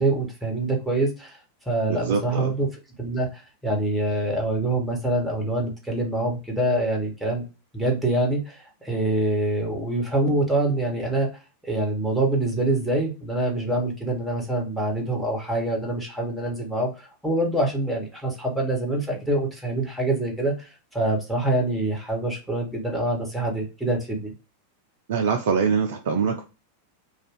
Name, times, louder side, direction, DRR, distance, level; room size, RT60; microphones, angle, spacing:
voice 1, 0.0-1.4 1.6-2.7 3.0-7.4 7.7-11.3 11.6-24.3, right 2 dB, ahead, 0 dB, 1.1 m, -25 dB
voice 2, 1.9-2.5 25.1-26.4, right 6 dB, 55° right, 4 dB, 0.4 m, -24 dB
2.4 x 2.4 x 3.3 m, 0.30 s
figure-of-eight pair, 90°, 0 cm